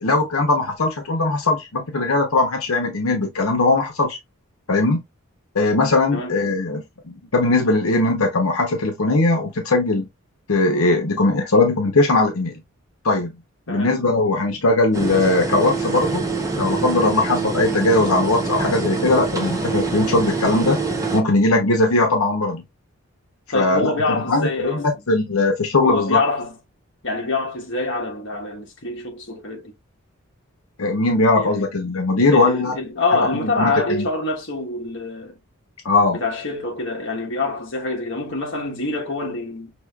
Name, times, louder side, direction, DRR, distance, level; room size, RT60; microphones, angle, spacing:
voice 1, 0.0-4.2 4.7-5.0 5.5-10.0 10.5-12.6 13.0-13.3 13.7-16.3 16.6-20.8 21.1-22.6 23.5-23.9 24.3-26.2 30.8-32.8 33.1-34.1 35.8-36.2, left 2 dB, 75° left, 0.9 m, -19 dB
sound 1, 14.9-21.2, right 4 dB, 15° right, 0.7 m, -25 dB
voice 2, 23.5-24.9 25.8-26.5 27.0-29.7 31.3-31.7 32.3-35.4 36.1-39.7, left 3 dB, 55° left, 1.2 m, -25 dB
6.1 x 2.9 x 2.3 m
head